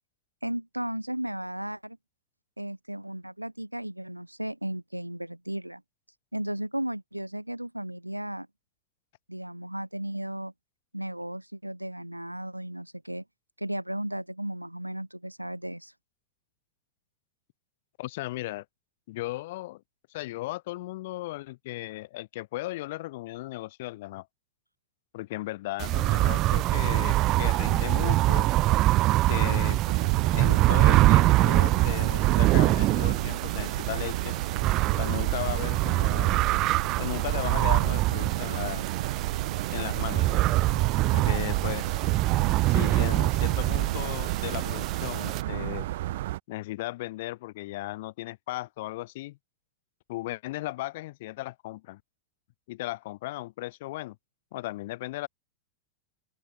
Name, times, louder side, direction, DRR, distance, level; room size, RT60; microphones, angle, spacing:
voice 1, 0.4-2.0 2.6-5.8 6.3-8.5 9.3-10.5 10.9-13.2 13.6-15.9, right 1 dB, 90° right, 1.8 m, -35 dB
voice 2, 18.0-18.7 19.1-19.8 20.1-24.3 25.1-28.5 29.3-29.8 30.3-34.4 35.0-36.4 37.0-38.9 39.7-40.4 41.1-41.9 42.7-45.9 46.5-49.4 50.1-52.0 52.7-54.2 54.5-55.3, left 18 dB, 50° left, 3.8 m, -36 dB
sound 1, 25.8-45.4, right 17 dB, 35° right, 0.4 m, -24 dB
sound 2, 29.8-46.4, right 15 dB, 55° right, 2.9 m, -32 dB
open air
figure-of-eight pair, 90°, 0 cm